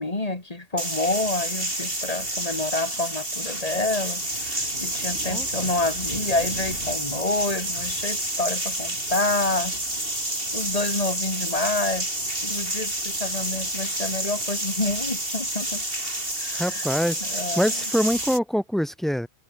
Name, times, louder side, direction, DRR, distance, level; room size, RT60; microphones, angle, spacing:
voice 1, 0.0-9.8 10.5-12.2 12.4-15.8 16.4-16.8 17.3-17.7, left 2 dB, 30° left, 3.1 m, -28 dB
sound 1, 0.8-18.4, right 1 dB, 45° right, 7.8 m, -29 dB
voice 2, 16.5-19.3, equal, ahead, 5.2 m, -25 dB
omnidirectional pair, 1.3 m